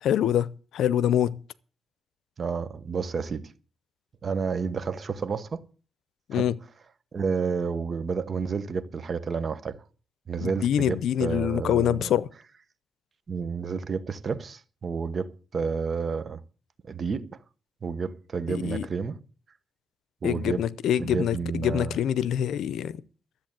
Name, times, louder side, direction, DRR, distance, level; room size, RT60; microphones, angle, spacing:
voice 1, 0.0-1.4 6.3-6.5 10.4-12.3 18.5-18.9 20.2-23.0, left 10 dB, 90° left, 0.6 m, -25 dB
voice 2, 2.4-3.5 4.2-5.6 6.3-6.5 7.1-9.8 10.3-12.1 13.3-16.4 16.8-17.4 17.8-19.2 20.2-20.6 21.0-22.0, right 5 dB, 45° right, 1.0 m, -30 dB
13.0 x 8.0 x 7.5 m
cardioid pair, 110°, 0 cm